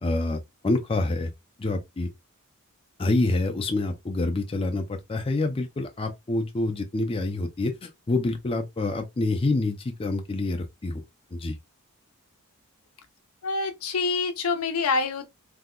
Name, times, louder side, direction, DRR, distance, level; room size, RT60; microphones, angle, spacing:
voice 1, 0.0-1.3 1.6-2.1 3.0-11.0 11.3-11.6, left 2 dB, 25° left, 0.4 m, -27 dB
voice 2, 13.4-15.3, left 4 dB, 75° left, 0.6 m, -26 dB
2.8 x 2.2 x 3.7 m
head